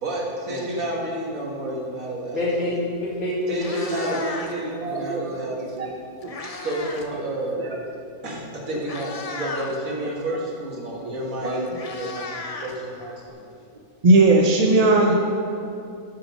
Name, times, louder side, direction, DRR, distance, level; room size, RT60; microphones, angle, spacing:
voice 1, 0.0-2.4 3.5-6.0 6.6-7.6 8.2-13.5, right 1 dB, 70° right, -2 dB, 2.1 m, -30 dB
voice 2, 2.3-4.2, left 1 dB, 55° left, -13 dB, 2.8 m, -27 dB
Meow, 3.0-3.1 3.4-4.7 5.8-7.1 7.4-7.7 8.4-8.5 8.8-9.7 11.1-11.2 11.4-13.3, left 3 dB, 35° left, 0.6 m, -35 dB
voice 3, 4.6-5.2 5.8-5.9 7.5-7.6 11.0-11.1 11.4-11.7 14.0-15.1, right 2 dB, 35° right, 0 dB, 0.6 m, -18 dB
12.5 x 6.7 x 5.3 m, 2.6 s
omnidirectional pair, 1.5 m